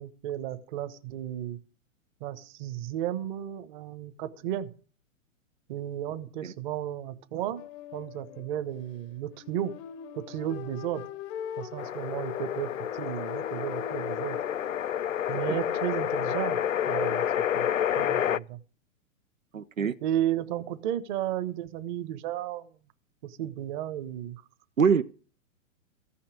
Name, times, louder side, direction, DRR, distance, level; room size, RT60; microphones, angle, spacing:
voice 1, 0.0-1.6 2.2-4.7 5.7-7.6 7.9-9.7 10.1-11.0 11.6-12.7 13.0-14.4 15.3-16.6 16.9-17.2 17.5-17.7 18.0-18.6 20.0-22.7 23.2-24.4, right 11 dB, 35° right, 1.3 m, -33 dB
sound 1, 7.6-14.9, left 9 dB, 25° left, 0.8 m, -42 dB
sound 2, 11.8-18.4, left 10 dB, 70° left, 0.6 m, -29 dB
voice 2, 19.5-20.0 24.8-25.0, right 6 dB, 75° right, 0.8 m, -24 dB
15.0 x 5.8 x 9.9 m
figure-of-eight pair, 110°, 40 cm